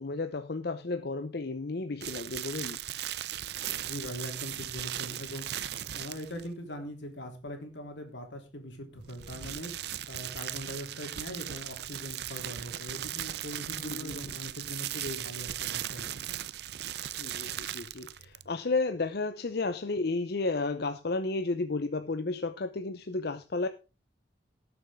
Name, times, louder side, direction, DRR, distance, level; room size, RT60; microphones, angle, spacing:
voice 1, 0.0-2.8 13.8-14.2 16.0-16.1 17.1-23.7, left 3 dB, 60° left, 9 dB, 0.7 m, -32 dB
sound 1, 2.0-6.5 9.0-18.5, right 11 dB, 65° right, 0.6 m, -38 dB
voice 2, 3.8-5.5 5.9-9.7 10.1-16.1, equal, 85° left, 4 dB, 3.3 m, -41 dB
18.5 x 7.0 x 3.7 m, 0.30 s
head